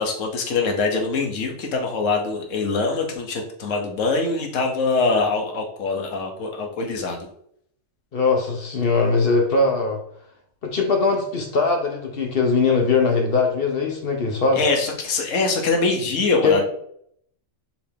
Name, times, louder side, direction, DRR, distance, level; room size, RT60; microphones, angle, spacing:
voice 1, 0.0-7.3 14.5-16.6, left 3 dB, 70° left, 2 dB, 1.2 m, -23 dB
voice 2, 8.1-10.0 10.6-14.6 16.4-16.6, left 4 dB, 50° left, 2 dB, 0.9 m, -20 dB
4.7 x 3.3 x 3.4 m, 0.68 s
omnidirectional pair, 1.4 m